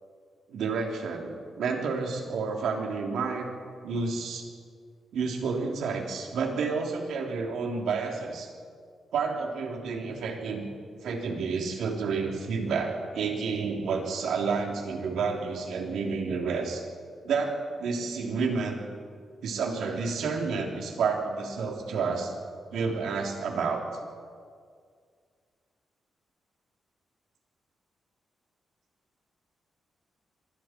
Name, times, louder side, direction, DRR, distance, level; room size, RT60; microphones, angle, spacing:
voice 1, 0.5-3.5 3.8-4.5 5.1-8.5 9.1-10.6 11.0-16.8 17.2-18.8 19.4-22.3 22.7-23.8, right 5 dB, 90° right, 1 dB, 3.4 m, -30 dB
26.5 x 24.0 x 4.6 m, 2.1 s
wide cardioid pair, 150°, 0 cm